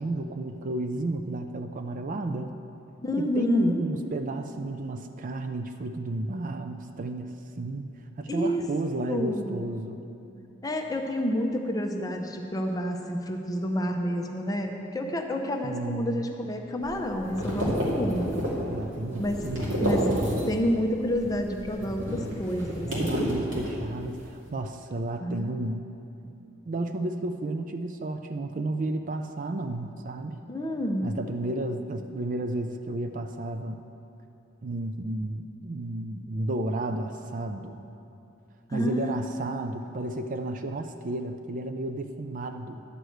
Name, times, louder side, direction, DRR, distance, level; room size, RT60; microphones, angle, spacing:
voice 1, 0.0-2.6 3.2-7.9 8.2-10.1 15.6-16.3 18.7-19.7 22.8-25.9 26.7-30.4 31.0-33.8 34.6-37.8 38.7-42.8, right 2 dB, 40° right, 7 dB, 0.4 m, -32 dB
voice 2, 3.0-3.8 8.3-8.7 9.1-9.6 10.6-18.5 19.2-19.5 19.8-20.2 20.4-23.2 25.2-25.5 30.5-31.1 38.7-39.2, equal, 20° left, 2 dB, 0.7 m, -29 dB
sound 1, 16.8-20.7 21.0-24.2, equal, 65° right, 2.4 m, -30 dB
11.0 x 4.8 x 7.8 m, 2.8 s
head